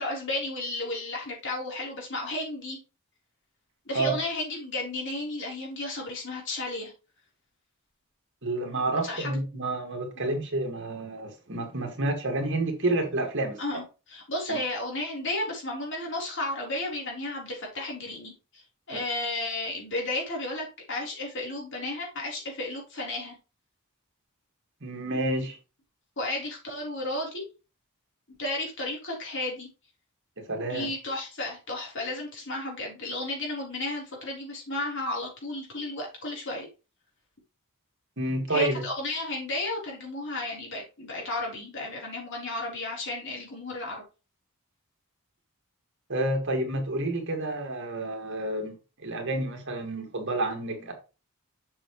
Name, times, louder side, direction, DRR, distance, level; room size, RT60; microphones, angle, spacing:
voice 1, 0.0-2.8 3.9-6.9 9.0-9.3 13.6-23.4 26.2-27.4 28.4-29.7 30.7-36.7 38.5-44.0, left 2 dB, 55° left, 4.0 m, -33 dB
voice 2, 8.4-13.6 14.5-14.6 18.9-19.0 24.8-25.6 30.5-30.9 38.2-38.8 46.1-48.7 49.0-50.9, right 2 dB, 55° right, 2.2 m, -29 dB
7.3 x 7.0 x 3.2 m
head